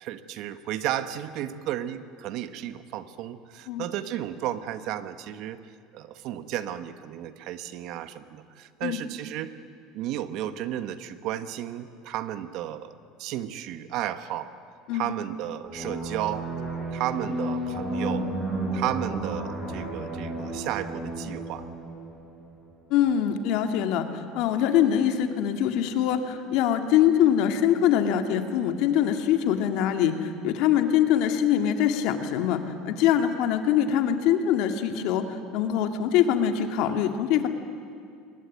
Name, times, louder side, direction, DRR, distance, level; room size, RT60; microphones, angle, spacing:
voice 1, 0.0-5.6 5.9-9.5 9.9-14.5 14.9-16.5 16.9-18.3 18.7-21.7, right 12 dB, 60° right, 11 dB, 1.2 m, -33 dB
sound 1, 15.6-23.0, right 1 dB, 15° right, 6.7 m, -33 dB
voice 2, 22.9-37.5, left 9 dB, 65° left, 6 dB, 2.0 m, -23 dB
23.5 x 20.0 x 9.3 m, 2.3 s
cardioid pair, 140°, 0 cm